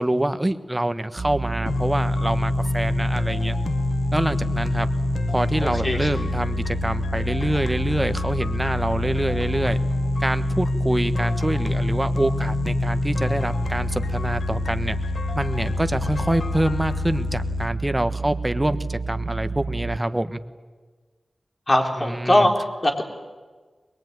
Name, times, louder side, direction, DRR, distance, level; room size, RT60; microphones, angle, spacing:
voice 1, 0.0-3.6 4.1-4.9 5.3-9.8 10.2-15.0 15.3-20.4 22.0-22.5, right 1 dB, 15° right, 10 dB, 1.3 m, -25 dB
sound 1, 1.2-20.0, right 4 dB, 50° right, 0.7 m, -30 dB
sound 2, 1.7-17.7, left 4 dB, 75° left, 1.2 m, -27 dB
voice 2, 5.6-6.0 21.7-23.0, left 1 dB, 30° left, 3 dB, 3.6 m, -21 dB
22.5 x 21.5 x 9.4 m, 1.4 s
wide cardioid pair, 75°, 0 cm